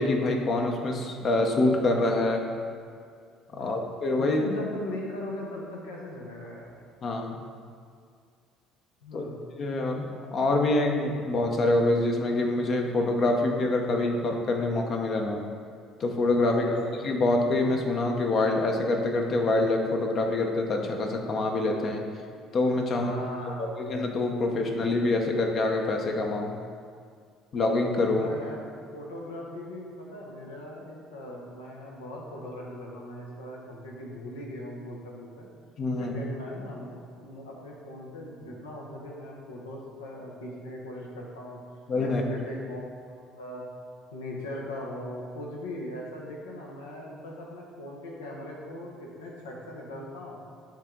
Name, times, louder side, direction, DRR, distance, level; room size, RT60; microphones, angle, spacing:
voice 1, 0.0-2.4 3.6-4.4 7.0-7.4 9.1-9.3 9.6-10.1 10.3-15.4 16.0-22.0 22.5-23.1 23.6-26.6 27.5-28.3 35.8-36.2 41.9-42.2, left 2 dB, 50° left, 2 dB, 0.8 m, -26 dB
voice 2, 3.5-3.8 4.2-6.7 9.0-9.4 16.5-16.9 22.9-23.9 28.1-28.7 28.9-35.5 36.0-41.6 42.0-42.8 43.4-43.6 44.1-50.4, left 1 dB, 85° left, -2 dB, 1.0 m, -39 dB
8.6 x 3.5 x 3.8 m, 2.1 s
hypercardioid pair, 60°, 0 cm